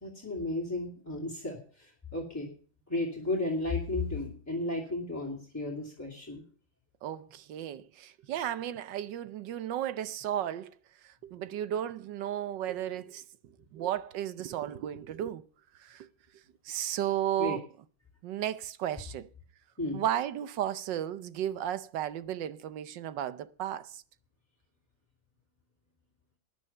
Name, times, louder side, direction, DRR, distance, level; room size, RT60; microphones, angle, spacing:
voice 1, 0.0-2.5 2.9-6.4 17.4-17.6 19.8-20.0, left 2 dB, 10° left, 2.6 m, -34 dB
voice 2, 7.0-10.8 11.0-15.4 15.8-16.1 16.6-17.6 18.2-19.3 19.9-24.0, right 11 dB, 70° right, 1.3 m, -34 dB
13.5 x 9.8 x 5.5 m
omnidirectional pair, 2.1 m